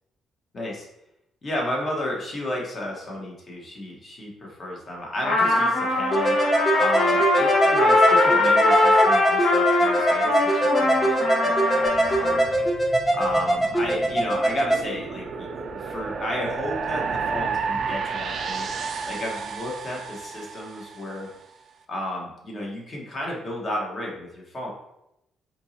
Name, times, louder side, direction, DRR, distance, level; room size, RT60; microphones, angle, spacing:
voice 1, 0.5-0.9 1.4-12.7 13.1-18.7 19.0-21.3 21.9-24.7, left 1 dB, 40° left, -2 dB, 1.2 m, -33 dB
Trumpet, 5.2-12.5, left 2 dB, 80° left, 0.9 m, -21 dB
sound 1, 6.1-14.8, right 1 dB, 15° left, 0.8 m, -23 dB
sound 2, 11.9-21.2, right 5 dB, 55° right, 0.4 m, -32 dB
4.4 x 3.0 x 2.7 m, 0.84 s
cardioid pair, 90°, 0 cm